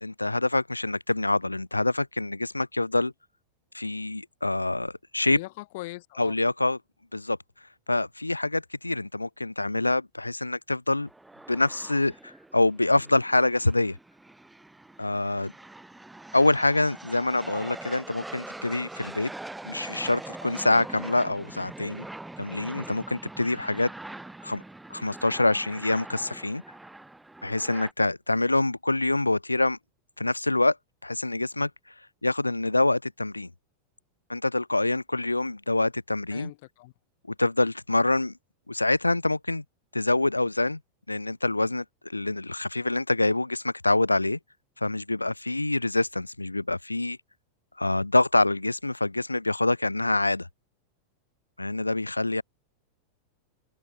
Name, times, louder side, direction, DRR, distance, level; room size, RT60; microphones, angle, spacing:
voice 1, 0.0-3.1 3.7-5.4 6.2-6.8 7.1-7.4 7.9-11.1 11.5-14.0 15.0-15.5 16.3-19.3 19.6-22.1 22.4-23.9 24.4-24.6 24.9-26.6 27.4-29.8 30.2-30.8 31.0-31.7 32.2-33.5 34.3-36.5 37.4-38.3 38.7-39.6 39.9-40.8 41.1-44.4 44.8-47.2 47.8-50.5 51.6-52.4, left 2 dB, 85° left, 0.6 m, -25 dB
voice 2, 5.3-6.4 36.3-36.9, left 21 dB, 50° left, 6.0 m, -40 dB
sound 1, 11.0-27.9, right 2 dB, 5° right, 5.7 m, -43 dB
figure-of-eight pair, 90°, 0 cm